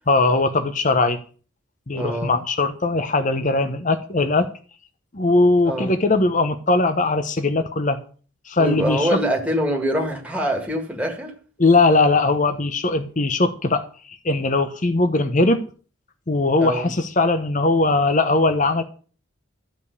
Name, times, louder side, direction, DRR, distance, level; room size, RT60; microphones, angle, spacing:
voice 1, 0.1-1.2 1.9-4.5 5.1-8.0 8.5-9.2 11.6-15.6 16.3-18.8, left 2 dB, 40° left, 1.0 m, -20 dB
voice 2, 1.9-2.4 5.6-6.0 8.6-11.3 16.6-16.9, equal, 5° right, 1.9 m, -24 dB
13.0 x 5.3 x 8.3 m
head